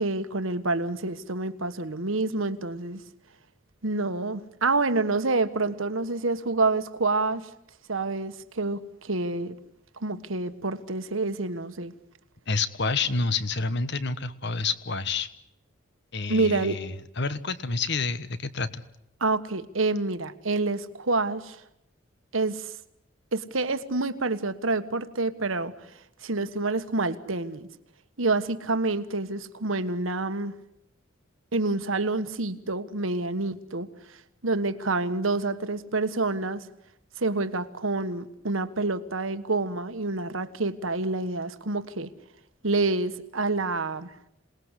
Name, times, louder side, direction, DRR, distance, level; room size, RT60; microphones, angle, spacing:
voice 1, 0.0-3.0 3.8-7.5 7.9-9.6 10.0-11.9 16.3-16.8 19.2-21.6 22.3-22.7 23.3-25.9 26.2-27.7 28.2-30.5 31.5-34.2 34.4-36.7 37.2-42.1 42.6-44.1, right 3 dB, 80° right, 11 dB, 1.5 m, -28 dB
voice 2, 12.5-15.3 16.1-18.8, left 4 dB, 55° left, 13 dB, 1.3 m, -29 dB
27.0 x 19.5 x 8.3 m, 0.79 s
head